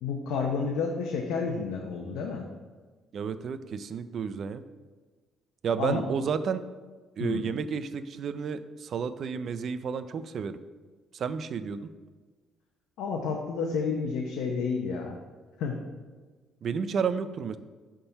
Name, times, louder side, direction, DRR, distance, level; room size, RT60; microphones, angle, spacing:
voice 1, 0.0-2.5 5.8-6.0 7.2-7.4 13.0-15.2 15.6-15.8, left 5 dB, 85° left, 1 dB, 0.7 m, -30 dB
voice 2, 3.1-4.6 5.6-6.6 7.2-10.6 11.1-11.9 16.6-17.6, right 6 dB, 45° right, 12 dB, 0.4 m, -31 dB
6.8 x 3.7 x 5.7 m, 1.4 s
cardioid pair, 150°, 0 cm